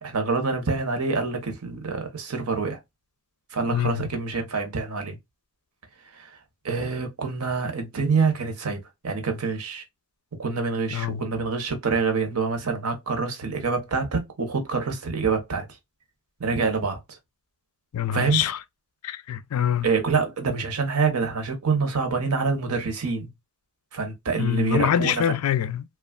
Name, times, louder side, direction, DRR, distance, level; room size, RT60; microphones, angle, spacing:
voice 1, 0.0-2.8 3.5-5.2 6.1-6.3 6.6-9.8 10.4-15.7 16.4-17.2 18.1-18.4 19.8-23.3 23.9-25.3, right 4 dB, 80° right, 0.8 m, -26 dB
voice 2, 3.7-4.1 10.9-11.2 17.9-18.6 19.0-19.9 24.4-25.8, left 10 dB, 80° left, 0.4 m, -25 dB
3.1 x 2.3 x 2.2 m
head